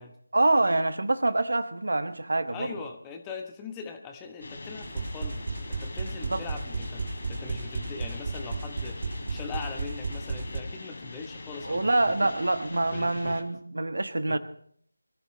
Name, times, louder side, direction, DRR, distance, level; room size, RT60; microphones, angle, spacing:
voice 1, 0.3-2.8 6.3-6.4 11.6-14.4, right 2 dB, 60° right, 10 dB, 1.4 m, -26 dB
voice 2, 2.4-5.4 5.7-7.0 7.3-9.0 9.3-11.9 12.2-12.3 12.9-13.4 14.3-14.4, left 5 dB, 10° left, 5 dB, 1.2 m, -41 dB
sound 1, 4.4-13.4, left 2 dB, 45° left, 3.2 m, -43 dB
sound 2, 4.8-10.6, right 3 dB, 40° right, 1.2 m, -34 dB
23.5 x 15.5 x 3.2 m, 0.62 s
figure-of-eight pair, 165°, 0 cm